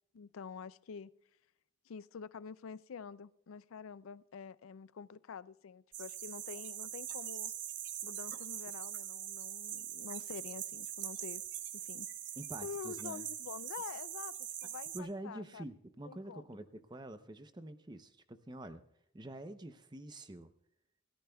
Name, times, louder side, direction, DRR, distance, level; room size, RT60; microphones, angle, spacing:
voice 1, 0.1-1.1 1.9-7.5 8.0-11.4 11.7-12.1 12.6-14.3 14.6-15.6 16.0-16.6, left 6 dB, 80° left, 17 dB, 0.4 m, -47 dB
sound 1, 5.9-15.0, right 10 dB, 55° right, 0.9 m, -42 dB
voice 2, 12.4-13.3 14.9-18.8 19.1-20.5, right 1 dB, 20° right, 10 dB, 0.6 m, -46 dB
27.5 x 14.5 x 2.3 m, 0.80 s
head